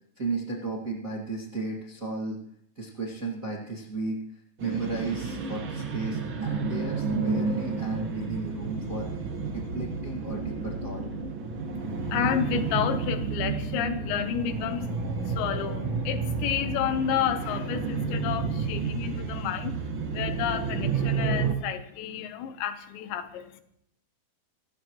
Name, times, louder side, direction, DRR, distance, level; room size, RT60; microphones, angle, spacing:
voice 1, 0.2-2.4 2.7-4.2 4.6-9.1 9.5-11.1, right 3 dB, 35° right, -3 dB, 1.4 m, -34 dB
sound 1, 4.6-21.5, right 4 dB, 90° right, 1.1 m, -31 dB
voice 2, 11.8-23.5, left 10 dB, 85° left, 9 dB, 3.4 m, -31 dB
28.0 x 14.5 x 3.1 m, 0.70 s
omnidirectional pair, 5.0 m